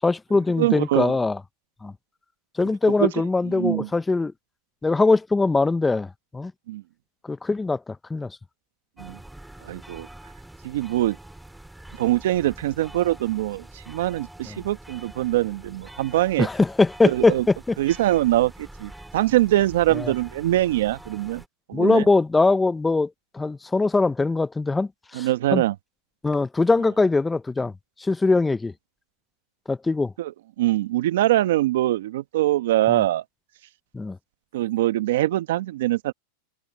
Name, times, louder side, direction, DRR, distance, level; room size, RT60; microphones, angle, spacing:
voice 1, 0.0-1.4 1.8-1.9 2.6-4.3 4.8-6.5 7.2-8.3 14.5-14.6 16.4-17.8 19.9-20.1 21.7-25.6 26.2-27.7 28.0-28.7 29.7-30.1 32.9-33.0 33.9-34.2, left 3 dB, 10° left, 0.6 m, -22 dB
voice 2, 0.6-1.2 3.0-3.1 3.4-3.9 6.7-6.8 9.0-9.2 9.6-10.1 10.6-11.2 12.0-16.5 17.0-17.4 17.8-21.4 21.7-22.0 25.1-25.7 30.2-30.3 30.6-33.2 34.5-36.1, right 15 dB, 75° right, 1.1 m, -23 dB
sound 1, 9.0-21.5, right 1 dB, 5° right, 5.4 m, -45 dB
hypercardioid pair, 115°, 0 cm